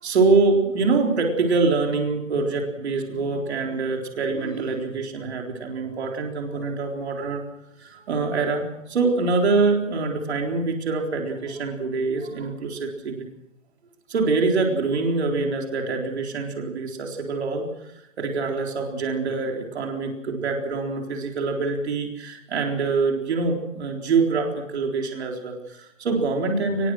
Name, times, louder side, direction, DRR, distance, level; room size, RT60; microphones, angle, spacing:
voice 1, 0.0-7.5 7.8-13.3 14.1-17.7 18.2-26.9, right 4 dB, 55° right, 2 dB, 4.1 m, -24 dB
23.5 x 21.0 x 6.3 m, 0.86 s
hypercardioid pair, 165°, 40 cm